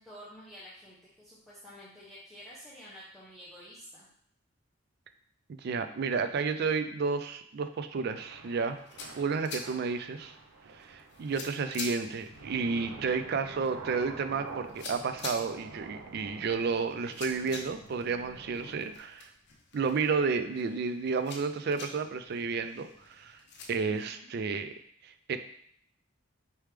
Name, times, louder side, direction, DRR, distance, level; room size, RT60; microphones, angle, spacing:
voice 1, 0.0-4.1 23.8-24.3, equal, ahead, -9 dB, 0.8 m, -50 dB
voice 2, 5.5-8.8 9.1-10.3 10.8-19.3 19.7-23.4 23.7-24.7 25.0-25.4, right 5 dB, 55° right, 9 dB, 0.4 m, -31 dB
Thunder / Rain, 8.2-19.0, right 3 dB, 80° right, 0.7 m, -48 dB
sound 1, 8.6-23.7, left 3 dB, 60° left, 0.7 m, -47 dB
4.5 x 3.4 x 3.2 m, 0.64 s
head